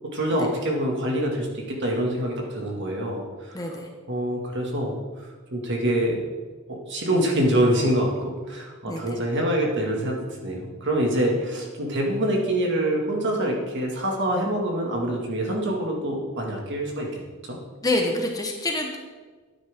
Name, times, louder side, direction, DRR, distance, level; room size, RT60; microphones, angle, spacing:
voice 1, 0.1-3.7 4.1-6.2 6.7-10.2 10.4-17.6, right 1 dB, 55° right, 0 dB, 2.1 m, -25 dB
voice 2, 3.5-3.9 8.9-9.1 17.8-19.0, left 2 dB, 15° left, 2 dB, 1.1 m, -27 dB
12.5 x 9.5 x 3.7 m, 1.4 s
head